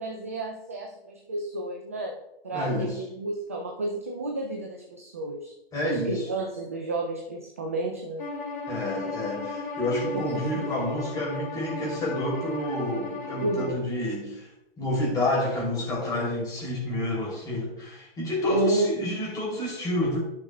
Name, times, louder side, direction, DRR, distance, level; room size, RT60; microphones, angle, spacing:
voice 1, 0.0-5.5 5.8-8.3 10.1-10.2 10.5-10.7 13.4-13.9 18.5-18.9, right 2 dB, 15° right, 1 dB, 0.3 m, -31 dB
voice 2, 2.5-3.0 5.7-6.3 8.7-14.5 14.8-20.2, left 1 dB, 10° left, -3 dB, 2.9 m, -29 dB
Bowed string instrument, 8.2-13.8, left 3 dB, 55° left, 1.8 m, -35 dB
13.5 x 6.1 x 2.2 m, 0.87 s
figure-of-eight pair, 130°, 31 cm